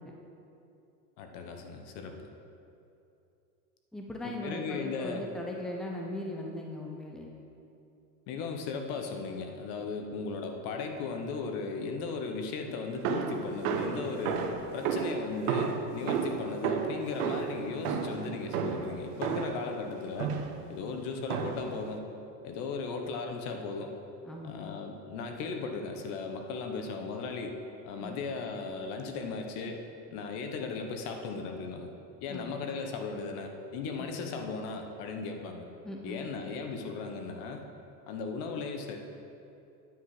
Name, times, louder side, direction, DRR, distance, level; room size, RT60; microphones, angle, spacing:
voice 1, 1.2-2.3 4.2-5.2 8.3-14.4 14.7-20.3 20.7-22.1 22.4-23.9 24.4-27.6 27.8-29.8 30.1-31.9 32.2-35.7 36.0-37.7 38.1-39.0, left 4 dB, 50° left, 4 dB, 1.2 m, -37 dB
voice 2, 3.9-7.3 24.3-24.6 28.0-28.2 32.3-32.6 34.0-34.1 35.8-36.3, left 1 dB, ahead, 0 dB, 0.8 m, -39 dB
sound 1, 13.0-19.7 20.2-20.7 21.3-21.8, right 6 dB, 65° right, 1.1 m, -32 dB
9.4 x 8.0 x 4.9 m, 2.7 s
hypercardioid pair, 115°, 50 cm